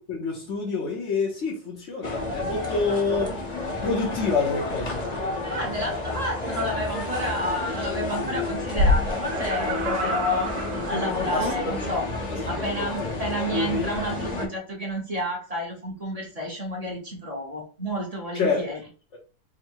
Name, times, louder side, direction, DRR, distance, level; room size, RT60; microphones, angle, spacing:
voice 1, 0.1-3.4 3.8-5.0 11.3-11.9 12.6-13.1 18.3-18.6 19.1-19.2, left 4 dB, 55° left, 1.1 m, -27 dB
sound 1, 2.0-14.5, left 2 dB, 35° left, 0.8 m, -30 dB
sound 2, 5.2-10.8, left 2 dB, 50° right, 1.2 m, -32 dB
voice 2, 5.5-10.5 10.9-12.1 12.4-18.8, equal, 30° right, 1.0 m, -30 dB
Laughter, 9.1-11.8 12.2-12.3, right 4 dB, 75° right, 1.2 m, -33 dB
3.7 x 2.2 x 4.4 m
omnidirectional pair, 1.6 m